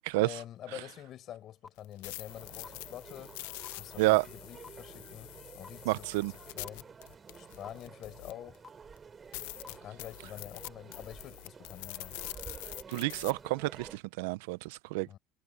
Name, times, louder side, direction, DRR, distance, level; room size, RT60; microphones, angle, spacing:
voice 1, 0.2-3.3 3.8-6.9 7.4-8.6 9.6-12.2 15.0-15.2, left 12 dB, 40° left, 7.3 m, -47 dB
sound 1, 1.6-1.7 2.6-2.7 3.6-3.7 4.6-4.7 5.6-5.7 6.6-6.7 7.6-7.7 8.6-8.7 9.6-9.7 10.6-10.7, left 4 dB, 15° left, 1.7 m, -47 dB
sound 2, 1.8-8.6 9.0-9.1 9.3-13.3, left 20 dB, 85° left, 0.8 m, -45 dB
sound 3, 2.3-14.0, right 5 dB, 20° right, 4.2 m, -51 dB
voice 2, 5.9-6.3 12.9-15.2, right 21 dB, 90° right, 0.6 m, -29 dB
cardioid pair, 145°, 0 cm